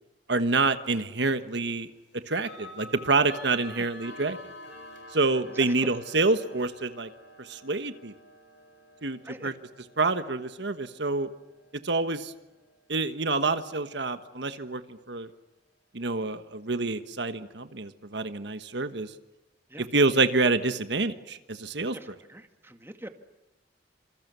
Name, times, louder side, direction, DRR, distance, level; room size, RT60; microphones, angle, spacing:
voice 1, 0.3-1.9 2.1-4.4 5.1-7.1 7.4-8.1 9.0-9.5 10.0-11.3 11.8-12.3 12.9-15.3 15.9-19.1 19.8-22.0, right 3 dB, 65° right, 10 dB, 1.4 m, -27 dB
sound 1, 0.8-1.1 2.4-13.2, left 1 dB, 75° left, 7.4 m, -49 dB
voice 2, 5.5-5.9 9.2-9.5 19.7-19.9 21.9-23.1, right 1 dB, 15° right, 7 dB, 1.9 m, -43 dB
28.0 x 27.0 x 6.9 m, 1.0 s
head